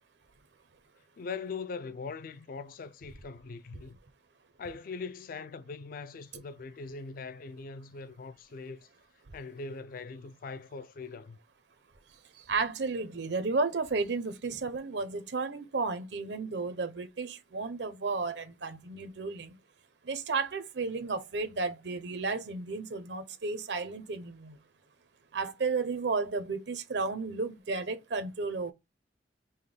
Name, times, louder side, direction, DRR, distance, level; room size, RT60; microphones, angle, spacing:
voice 1, 1.2-4.0 4.6-8.9 9.3-11.4, left 4 dB, 55° left, 0.4 m, -41 dB
voice 2, 12.4-19.6 20.0-24.6 25.3-28.7, right 4 dB, 80° right, 0.7 m, -33 dB
5.5 x 2.2 x 3.3 m
head